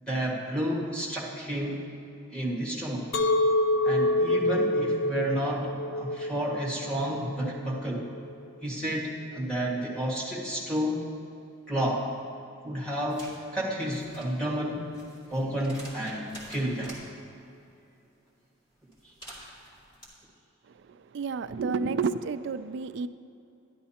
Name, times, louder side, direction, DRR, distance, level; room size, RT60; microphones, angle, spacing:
voice 1, 0.0-1.8 2.3-3.1 3.8-8.1 8.6-11.0 11.7-12.0 12.6-14.9 15.3-16.9, right 1 dB, 5° left, -5 dB, 1.8 m, -31 dB
Chink clink, 3.1-8.3, left 1 dB, 70° left, 0.5 m, -27 dB
sound 1, 13.1-13.4 13.8-17.0 18.9-20.1, right 1 dB, 25° left, 2.4 m, -47 dB
voice 2, 21.1-23.1, right 5 dB, 60° right, 13 dB, 0.3 m, -30 dB
12.0 x 11.0 x 2.8 m, 2.8 s
head